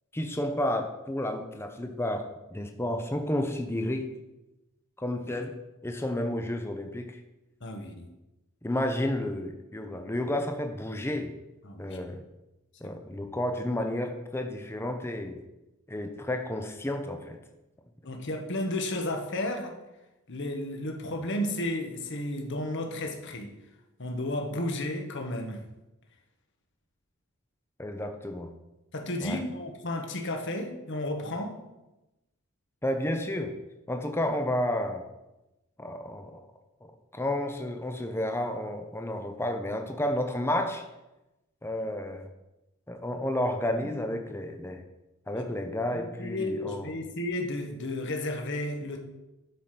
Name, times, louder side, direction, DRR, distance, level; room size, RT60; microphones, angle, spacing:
voice 1, 0.1-2.3 2.5-4.1 5.0-5.5 5.8-7.2 8.6-11.3 11.8-12.2 12.8-15.4 15.9-17.4 27.8-28.5 29.2-29.4 32.8-33.5 33.9-35.0 35.8-36.4 37.1-40.8 41.6-42.2 42.9-44.8 45.3-46.9, left 1 dB, 10° left, 4 dB, 0.8 m, -31 dB
voice 2, 7.6-8.1 11.6-12.0 12.8-13.2 18.0-19.8 20.3-23.5 24.0-25.6 28.9-31.6 43.8-44.1 45.3-45.4 45.9-49.0, left 1 dB, 60° left, 3 dB, 1.4 m, -33 dB
11.5 x 5.0 x 5.9 m, 0.98 s
head